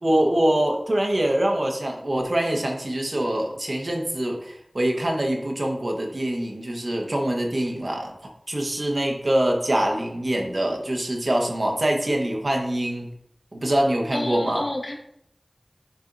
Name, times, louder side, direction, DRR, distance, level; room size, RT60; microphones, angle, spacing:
voice 1, 0.0-8.1 8.5-13.1 13.5-14.6, right 1 dB, 65° right, 1 dB, 1.3 m, -24 dB
voice 2, 14.1-14.9, left 1 dB, 65° left, -1 dB, 1.4 m, -29 dB
10.0 x 4.4 x 2.7 m, 0.73 s
wide cardioid pair, 50°, 0 cm